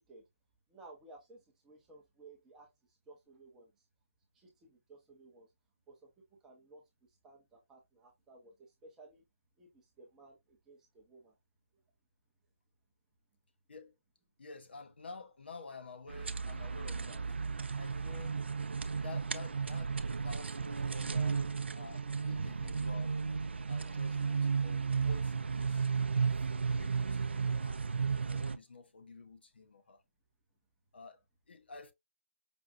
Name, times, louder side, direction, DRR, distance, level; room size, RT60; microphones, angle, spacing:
voice 1, 0.7-3.7 4.3-5.5 5.9-9.2 9.6-11.4, right 2 dB, 5° right, 0.6 m, -57 dB
voice 2, 14.4-17.4 17.8-18.4 18.8-21.5 21.7-23.2 23.7-25.9 26.3-27.8 28.2-30.0 30.9-31.9, left 4 dB, 50° left, 0.7 m, -51 dB
sound 1, 16.1-28.6, right 5 dB, 55° right, 0.4 m, -34 dB
5.1 x 2.5 x 2.4 m
figure-of-eight pair, 160°, 7 cm